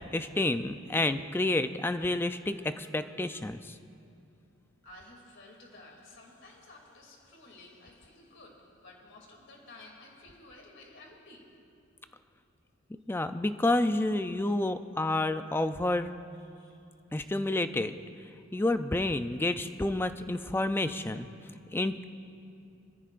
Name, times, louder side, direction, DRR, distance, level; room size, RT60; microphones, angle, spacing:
voice 1, 0.1-3.8 13.1-16.1 17.1-17.9 18.5-21.3 21.7-22.0, left 2 dB, 10° left, 0.3 m, -29 dB
voice 2, 4.8-11.7 16.5-16.8, left 2 dB, 55° left, 2.7 m, -53 dB
25.0 x 14.5 x 2.5 m
head